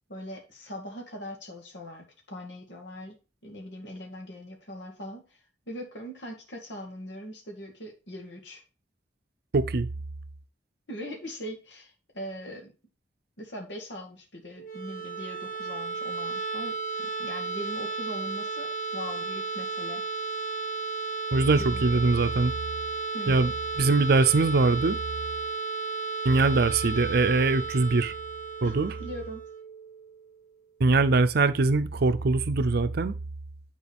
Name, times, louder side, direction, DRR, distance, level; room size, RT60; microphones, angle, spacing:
voice 1, 0.1-3.1 3.4-5.4 5.7-8.6 10.9-12.7 13.4-20.0 21.6-22.0 23.1-23.4 28.6-29.4, equal, 75° left, 1.9 m, -41 dB
voice 2, 9.5-9.9 21.3-22.5 23.3-25.0 26.2-28.1 28.6-28.9 30.8-33.1, right 3 dB, 60° right, 0.6 m, -22 dB
sound 1, 14.6-30.3, right 4 dB, 50° left, 1.2 m, -34 dB
9.6 x 4.4 x 3.4 m
head